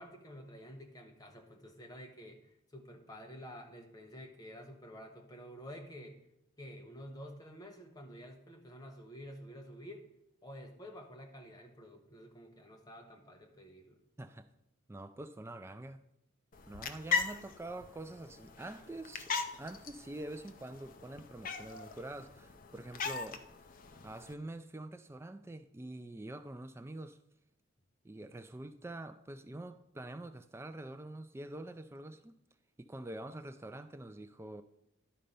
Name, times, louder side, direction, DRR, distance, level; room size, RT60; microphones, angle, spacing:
voice 1, 0.0-6.2 6.6-10.1 10.4-14.0, equal, 20° left, 1.0 m, -50 dB
voice 2, 14.9-16.0 16.7-23.5 24.0-27.2 28.0-32.4 32.8-34.6, right 1 dB, 10° right, 0.3 m, -46 dB
sound 1, 16.5-24.3, left 5 dB, 40° left, 0.5 m, -40 dB
11.5 x 4.3 x 5.3 m
head